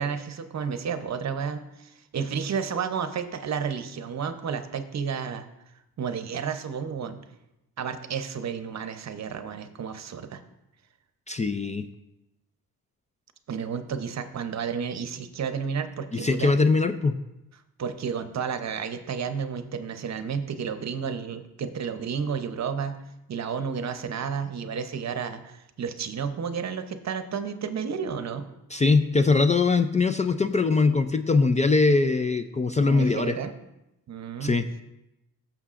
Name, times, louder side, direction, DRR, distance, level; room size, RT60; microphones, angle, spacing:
voice 1, 0.0-5.5 6.0-7.2 7.8-10.4 13.5-16.5 17.8-23.0 23.3-28.5 32.9-33.5 34.1-34.6, right 6 dB, 50° right, 9 dB, 0.8 m, -31 dB
voice 2, 11.3-11.8 16.1-17.1 28.7-33.3 34.4-34.7, left 3 dB, 20° left, 9 dB, 0.4 m, -22 dB
15.5 x 6.9 x 2.5 m, 0.91 s
cardioid pair, 95°, 35 cm